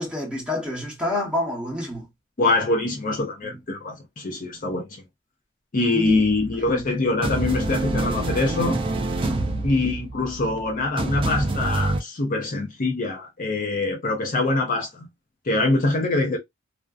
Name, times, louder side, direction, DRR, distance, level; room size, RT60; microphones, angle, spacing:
voice 1, 0.0-2.1 3.4-3.6 4.6-4.7 5.9-6.2 6.7-6.8 9.2-9.5, left 1 dB, 5° right, 1.0 m, -28 dB
voice 2, 2.4-5.0 5.7-8.8 9.6-15.1 15.5-16.4, left 2 dB, 45° left, 0.6 m, -24 dB
sound 1, 6.0-6.9 7.2-12.0, right 2 dB, 25° right, 0.4 m, -27 dB
2.5 x 2.2 x 2.3 m
head